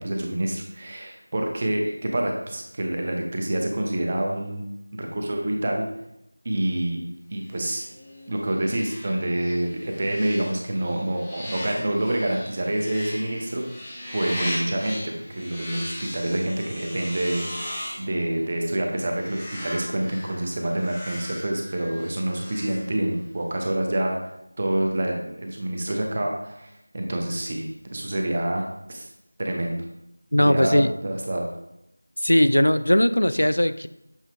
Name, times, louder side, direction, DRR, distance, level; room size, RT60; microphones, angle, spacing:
voice 1, 0.0-4.6 4.9-5.9 6.4-7.0 7.3-7.8 8.3-13.6 14.1-17.7 18.0-24.2 24.6-27.6 27.9-29.1 29.4-29.8 30.4-31.5, right 1 dB, 25° right, 1 dB, 0.8 m, -27 dB
sound 1, 7.5-23.4, left 1 dB, 5° left, 0.7 m, -38 dB
voice 2, 30.3-30.9 32.2-33.9, equal, 80° left, 12 dB, 0.4 m, -19 dB
7.3 x 3.9 x 3.4 m, 0.82 s
figure-of-eight pair, 175°, 0 cm